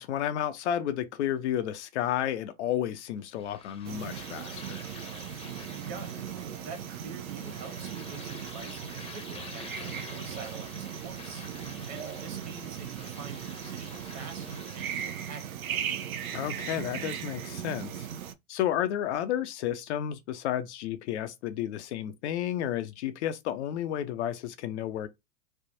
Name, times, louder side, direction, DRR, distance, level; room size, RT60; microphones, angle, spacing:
voice 1, 0.0-4.8 16.3-18.1 18.5-25.1, left 11 dB, 50° left, 0.6 m, -32 dB
sound 1, 3.3-15.6, left 4 dB, 15° left, 0.7 m, -48 dB
sound 2, 3.8-18.3, right 9 dB, 75° right, 0.7 m, -38 dB
voice 2, 5.7-15.8, right 5 dB, 35° right, 1.3 m, -46 dB
3.3 x 2.2 x 2.6 m
hypercardioid pair, 105°, 43 cm